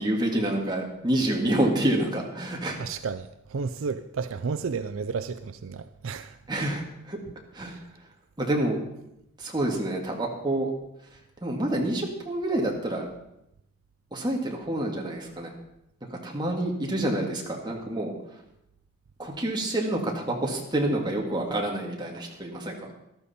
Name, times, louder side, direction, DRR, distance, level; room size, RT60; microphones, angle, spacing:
voice 1, 0.0-2.9 6.5-7.2 7.5-7.8 8.4-8.8 9.4-10.7 11.4-13.1 14.1-15.5 16.0-18.1 19.2-22.9, right 1 dB, 20° right, 0 dB, 1.9 m, -28 dB
voice 2, 2.8-6.4 7.6-7.8, right 5 dB, 70° right, 12 dB, 0.4 m, -32 dB
13.5 x 12.5 x 4.3 m, 0.84 s
head